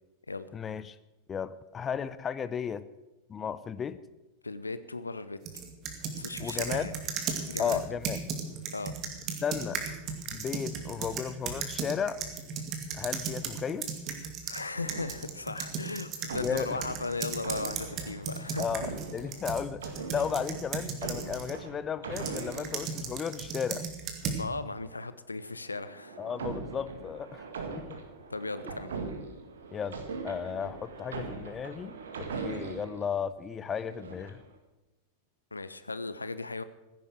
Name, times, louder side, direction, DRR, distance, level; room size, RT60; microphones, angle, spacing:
voice 1, 0.5-1.0 1.3-2.8 3.3-4.0 6.4-6.9 7.6-8.2 9.4-9.8 10.3-12.2 12.9-13.9 16.4-16.8 18.6-23.8 26.2-27.4 27.9-28.0 29.7-30.0 30.2-31.9 32.4-34.4, left 7 dB, 20° left, 16 dB, 0.6 m, -34 dB
voice 2, 4.4-5.4 6.1-6.9 7.5-7.8 8.7-8.9 14.4-18.6 24.4-26.2 28.3-28.9 35.5-36.6, left 3 dB, 80° left, 14 dB, 0.7 m, -37 dB
sound 1, 5.5-14.6 14.9-21.6 22.2-24.4, right 6 dB, 35° right, 2.2 m, -36 dB
sound 2, 14.7-15.7 16.2-23.5 25.4-33.1 33.7-34.5, right 4 dB, 65° right, 2.0 m, -41 dB
15.0 x 10.5 x 6.4 m, 1.1 s
figure-of-eight pair, 90°, 0 cm